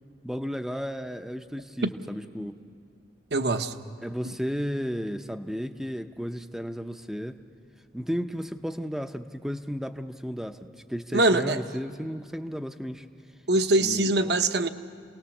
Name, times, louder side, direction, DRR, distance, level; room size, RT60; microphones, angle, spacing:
voice 1, 0.2-2.6 4.0-7.4 7.9-13.1 13.8-14.1, equal, ahead, 8 dB, 0.6 m, -33 dB
voice 2, 3.3-3.7 4.2-4.3 11.1-11.6 13.5-14.7, right 2 dB, 60° right, 8 dB, 0.9 m, -23 dB
27.5 x 18.5 x 7.2 m, 2.3 s
head